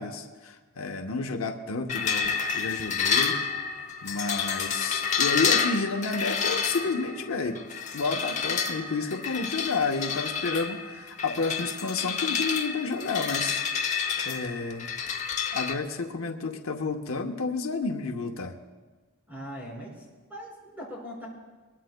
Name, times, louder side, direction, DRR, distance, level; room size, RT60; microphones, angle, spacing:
voice 1, 0.0-3.4 4.0-7.6 7.9-13.6 14.2-14.9 15.5-18.5, left 4 dB, 75° left, 4 dB, 0.9 m, -30 dB
sound 1, 1.9-15.7, left 6 dB, 35° left, 0.8 m, -29 dB
voice 2, 19.3-19.9 20.3-21.3, equal, 10° right, -4 dB, 5.0 m, -40 dB
22.5 x 21.0 x 2.2 m, 1.3 s
head